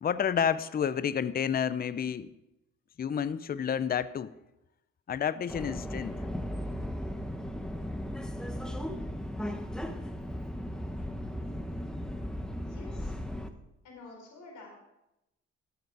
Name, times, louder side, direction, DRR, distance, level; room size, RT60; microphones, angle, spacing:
voice 1, 0.0-2.3 3.0-4.3 5.1-6.2, left 8 dB, 30° left, 16 dB, 0.5 m, -30 dB
Subway metro underground, 5.5-13.5, equal, ahead, 1.0 m, -36 dB
voice 2, 12.6-13.1 13.8-14.8, left 3 dB, 80° left, 0 dB, 4.6 m, -49 dB
13.0 x 8.0 x 4.7 m, 0.91 s
cardioid pair, 90°, 30 cm